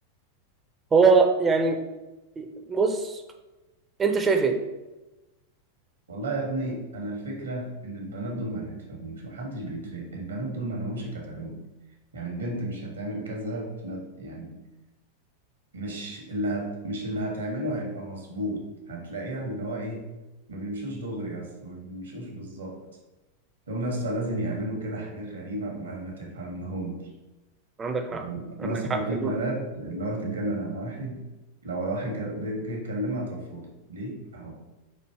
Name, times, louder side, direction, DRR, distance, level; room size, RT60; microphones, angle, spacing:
voice 1, 0.9-1.8 2.4-3.2 4.0-4.6 27.8-28.3 28.6-29.4, right 4 dB, 20° right, 5 dB, 0.5 m, -23 dB
voice 2, 6.1-11.6 12.1-14.5 15.7-20.1 20.5-22.8 23.7-27.0 28.1-31.2 31.6-34.6, right 1 dB, 70° right, 1 dB, 1.1 m, -33 dB
4.4 x 2.7 x 4.3 m, 1.1 s
figure-of-eight pair, 90°, 0 cm